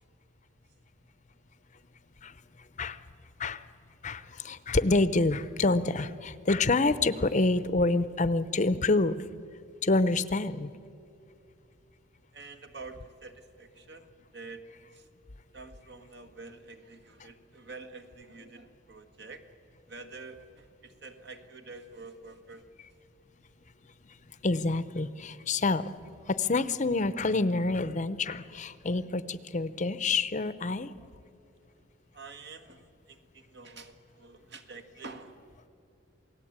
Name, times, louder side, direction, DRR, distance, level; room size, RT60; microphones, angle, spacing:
voice 1, 4.0-9.2 9.8-10.7 24.4-25.9 26.3-30.9, left 3 dB, 40° left, 14 dB, 0.7 m, -27 dB
voice 2, 12.3-14.6 14.9-15.1 15.5-19.5 19.9-22.6 32.1-35.7, right 3 dB, 60° right, 7 dB, 1.7 m, -47 dB
28.0 x 18.5 x 8.8 m, 2.5 s
head